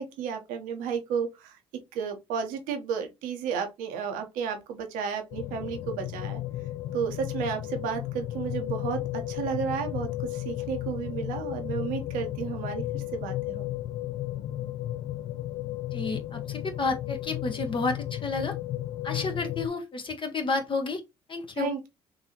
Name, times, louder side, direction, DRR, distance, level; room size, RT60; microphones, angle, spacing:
voice 1, 0.0-1.6 1.9-6.4 6.9-13.7 21.5-21.9, right 7 dB, 70° right, 0.9 m, -32 dB
sound 1, 5.3-19.7, left 14 dB, 60° left, 0.5 m, -34 dB
voice 2, 15.9-18.5 19.0-21.0 21.3-21.7, left 3 dB, 35° left, 0.8 m, -31 dB
3.9 x 2.7 x 2.8 m
hypercardioid pair, 55°, 14 cm